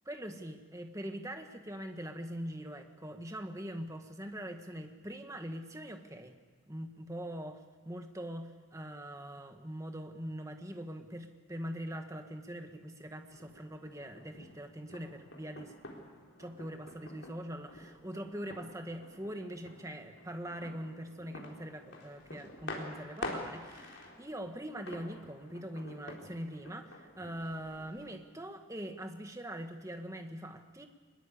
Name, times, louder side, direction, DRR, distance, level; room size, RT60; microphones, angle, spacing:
voice 1, 0.0-6.3 6.7-15.8 16.4-30.9, equal, 15° right, 5 dB, 1.5 m, -42 dB
sound 1, 13.3-28.2, left 2 dB, 60° left, 3.9 m, -48 dB
23.0 x 21.5 x 8.5 m, 1.4 s
head